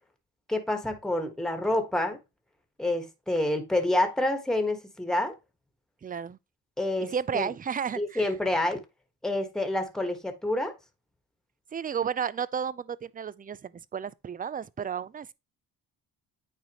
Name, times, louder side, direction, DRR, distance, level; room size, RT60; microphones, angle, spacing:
voice 1, 0.5-2.2 2.8-5.3 6.8-7.5 8.0-8.8 9.2-10.7, left 1 dB, ahead, 1.4 m, -28 dB
voice 2, 6.0-6.4 7.1-8.3 11.7-15.3, right 7 dB, 25° right, 0.3 m, -32 dB
9.2 x 4.2 x 3.0 m
cardioid pair, 95°, 42 cm